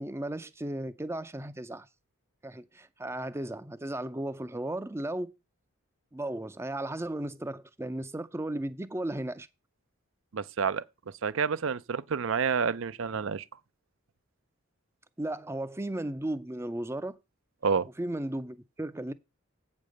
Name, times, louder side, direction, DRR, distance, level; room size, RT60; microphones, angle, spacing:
voice 1, 0.0-1.9 2.4-5.3 6.1-9.5 15.2-17.2 18.0-19.1, right 1 dB, 10° right, 0.5 m, -35 dB
voice 2, 10.3-10.8 11.2-13.4 17.6-17.9, right 6 dB, 60° right, 0.5 m, -29 dB
8.5 x 5.3 x 6.4 m
head